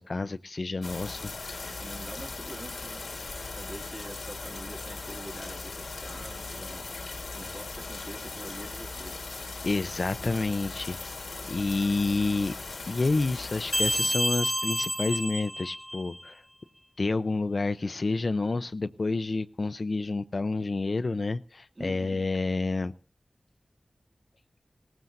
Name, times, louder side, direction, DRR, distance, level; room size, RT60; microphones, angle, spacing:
voice 1, 0.0-1.8 9.6-11.0 11.4-12.5 12.9-16.4 17.0-22.9, left 3 dB, 55° left, 11 dB, 0.6 m, -29 dB
sound 1, 0.8-14.0, left 3 dB, 75° left, 1.6 m, -39 dB
voice 2, 1.6-3.1 3.4-6.9 7.3-9.4 21.8-22.2, right 1 dB, 40° right, 0 dB, 2.4 m, -45 dB
sound 2, 13.7-16.3, equal, ahead, 0.7 m, -29 dB
18.5 x 15.0 x 2.7 m, 0.41 s
wide cardioid pair, 65°, 0 cm